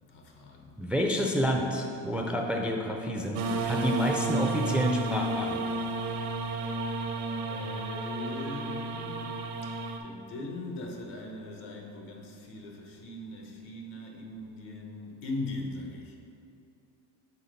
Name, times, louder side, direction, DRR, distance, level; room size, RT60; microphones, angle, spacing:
voice 1, 0.1-0.7 7.5-9.3 10.0-16.2, left 2 dB, 80° left, 1 dB, 1.2 m, -40 dB
voice 2, 0.8-5.6, equal, 5° right, 2 dB, 0.3 m, -29 dB
sound 1, 3.3-10.0, right 2 dB, 70° right, 0.7 m, -32 dB
5.7 x 3.9 x 5.1 m, 2.6 s
cardioid pair, 110°, 40 cm